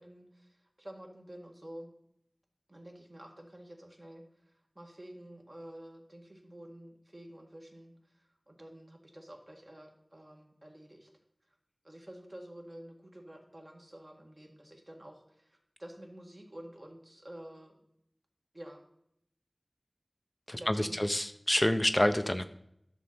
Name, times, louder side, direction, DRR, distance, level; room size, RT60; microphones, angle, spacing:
voice 1, 0.0-1.9 2.7-11.1 11.8-17.8 18.5-18.8 20.5-21.1, right 1 dB, 45° right, 1 dB, 1.8 m, -50 dB
voice 2, 20.5-22.5, left 1 dB, 30° left, 9 dB, 0.5 m, -28 dB
11.0 x 6.4 x 4.4 m, 0.75 s
wide cardioid pair, 45°, 0 cm